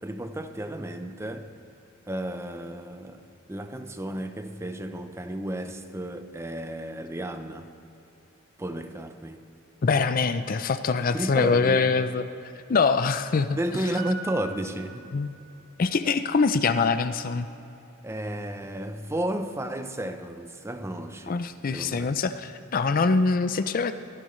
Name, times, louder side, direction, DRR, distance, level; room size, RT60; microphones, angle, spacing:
voice 1, 0.0-1.5 2.1-3.2 3.5-7.7 8.6-9.5 10.9-11.9 13.5-15.1 18.0-21.4 21.7-22.2, right 1 dB, 15° right, 0.6 m, -33 dB
voice 2, 9.8-12.2 12.7-13.6 15.1-15.3 15.8-17.5 21.3-23.9, left 4 dB, 40° left, 0.4 m, -24 dB
Piano, 14.0-15.8 16.1-16.2, right 3 dB, 65° right, 1.1 m, -41 dB
22.5 x 14.5 x 3.2 m
head